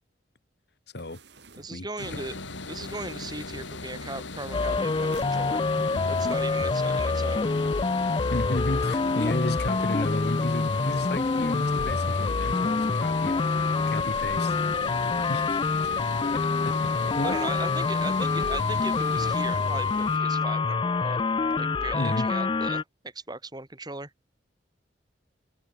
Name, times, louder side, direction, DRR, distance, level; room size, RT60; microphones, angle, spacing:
sound 1, 1.0-7.1, right 1 dB, 65° right, 6.4 m, -51 dB
voice 1, 1.6-2.4 2.7-5.6 6.1-7.5 9.2-9.5 17.2-21.3 21.6-24.1, right 2 dB, 20° right, 2.6 m, -38 dB
sound 2, 2.0-20.2, left 3 dB, 80° left, 3.5 m, -38 dB
sound 3, 4.5-22.8, left 4 dB, 25° left, 0.4 m, -26 dB
voice 2, 8.3-13.4 13.9-14.6 15.3-15.6 16.8-16.9 17.2-17.4 21.9-22.3, left 1 dB, 60° left, 1.8 m, -32 dB
open air
head